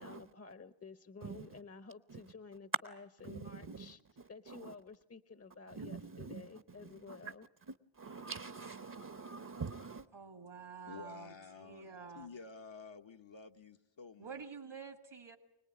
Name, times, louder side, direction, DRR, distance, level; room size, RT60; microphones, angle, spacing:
voice 1, 0.0-4.0 4.3-7.5, left 4 dB, 30° left, 13 dB, 0.8 m, -52 dB
voice 2, 1.2-1.6 2.1-2.2 3.2-4.7 5.7-6.5 6.8-7.3 7.7-10.0, right 4 dB, 40° right, 12 dB, 0.9 m, -46 dB
voice 3, 10.1-12.3 14.2-15.4, right 5 dB, 75° right, 6 dB, 2.0 m, -49 dB
voice 4, 10.9-14.4, left 5 dB, 65° left, 4 dB, 1.1 m, -51 dB
25.5 x 19.5 x 9.4 m, 0.90 s
wide cardioid pair, 50°, 49 cm